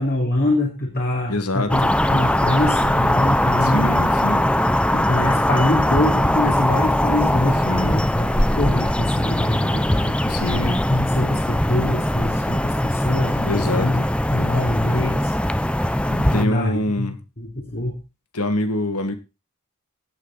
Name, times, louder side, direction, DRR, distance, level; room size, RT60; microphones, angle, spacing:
voice 1, 0.0-4.0 4.7-14.0 14.3-15.3 16.1-18.0, left 1 dB, 45° left, -1 dB, 3.0 m, -24 dB
voice 2, 1.3-1.9 3.6-4.5 7.6-8.0 10.3-10.8 13.4-14.1 16.3-17.2 18.3-19.2, left 1 dB, 90° left, 8 dB, 2.0 m, -25 dB
sound 1, 1.7-16.4, left 1 dB, 5° left, 0.6 m, -20 dB
15.5 x 8.7 x 4.1 m, 0.28 s
head